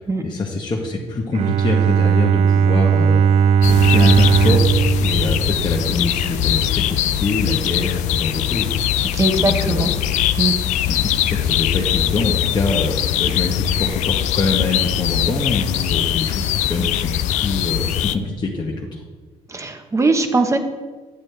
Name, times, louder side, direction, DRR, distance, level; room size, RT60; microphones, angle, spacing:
voice 1, 0.2-3.2 3.7-9.9 10.9-19.0, left 3 dB, 40° left, -2 dB, 1.1 m, -24 dB
Bowed string instrument, 1.3-6.3, right 7 dB, 60° right, 0.4 m, -17 dB
sound 1, 3.6-18.2, left 11 dB, 85° left, 0.4 m, -21 dB
voice 2, 9.1-9.9 10.4-10.5 19.5-20.6, right 3 dB, 25° right, 6 dB, 1.0 m, -19 dB
8.7 x 7.9 x 3.4 m, 1.4 s
cardioid pair, 75°, 12 cm